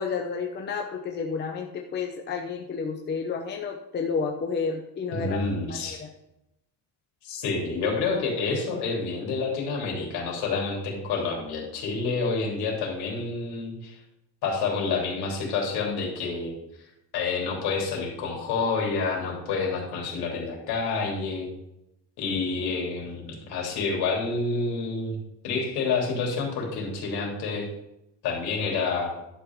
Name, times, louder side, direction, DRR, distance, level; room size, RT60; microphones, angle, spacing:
voice 1, 0.0-5.5 5.8-6.1, left 5 dB, 25° left, 2 dB, 0.8 m, -31 dB
voice 2, 5.1-6.0 7.2-14.0 14.4-16.5 17.1-21.5 22.2-25.2 25.4-27.6 28.2-29.1, left 4 dB, 65° left, -1 dB, 3.3 m, -28 dB
11.0 x 6.0 x 4.7 m, 0.84 s
cardioid pair, 175°, 41 cm